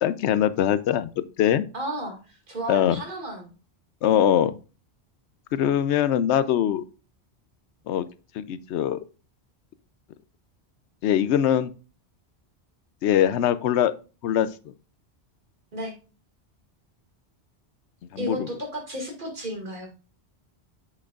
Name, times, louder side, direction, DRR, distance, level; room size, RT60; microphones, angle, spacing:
voice 1, 0.0-1.6 2.7-3.0 4.0-4.6 5.5-6.8 7.9-8.1 8.3-9.0 11.0-11.7 13.0-13.9 14.2-14.5 18.1-18.5, left 10 dB, 90° left, 14 dB, 0.9 m, -22 dB
voice 2, 1.7-3.5 15.7-15.9 18.2-19.9, right 1 dB, 50° right, 1 dB, 2.3 m, -33 dB
7.6 x 6.5 x 2.4 m, 0.34 s
omnidirectional pair, 1.1 m